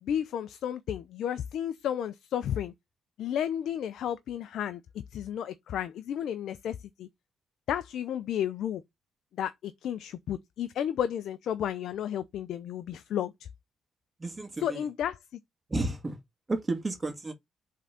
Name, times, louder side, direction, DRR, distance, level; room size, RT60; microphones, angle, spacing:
voice 1, 0.0-2.7 3.2-4.8 5.1-7.1 7.7-8.8 9.4-13.3 14.6-15.2, left 10 dB, 75° left, 0.6 m, -32 dB
voice 2, 14.2-14.9 15.7-16.2 16.5-17.3, right 2 dB, 25° right, 1.9 m, -32 dB
5.6 x 3.8 x 5.6 m
cardioid pair, 75°, 0 cm